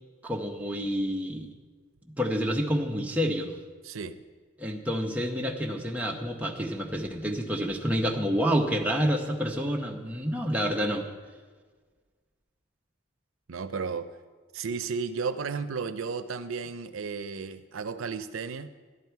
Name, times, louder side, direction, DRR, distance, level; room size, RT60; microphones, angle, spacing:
voice 1, 0.2-1.5 2.2-3.5 4.6-11.1, equal, 5° right, 0 dB, 1.0 m, -28 dB
voice 2, 3.8-4.2 13.5-14.1 14.5-18.7, right 5 dB, 85° right, 10 dB, 0.6 m, -33 dB
12.5 x 11.5 x 4.7 m, 1.5 s
head